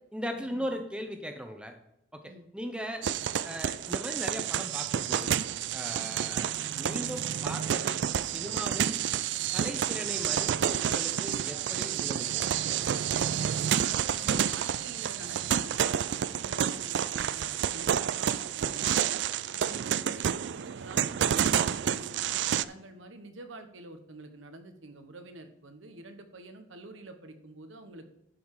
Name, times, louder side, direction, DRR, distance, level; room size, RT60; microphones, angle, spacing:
voice 1, 0.1-1.7 2.1-3.0 3.4-5.3 5.7-8.0 8.2-9.0 9.5-12.4, equal, 5° right, 5 dB, 0.8 m, -38 dB
sound 1, 3.0-22.6, right 9 dB, 65° right, 0.3 m, -29 dB
voice 2, 13.7-19.2 19.5-28.1, right 2 dB, 90° right, 7 dB, 1.2 m, -48 dB
11.5 x 5.7 x 4.8 m, 0.79 s
head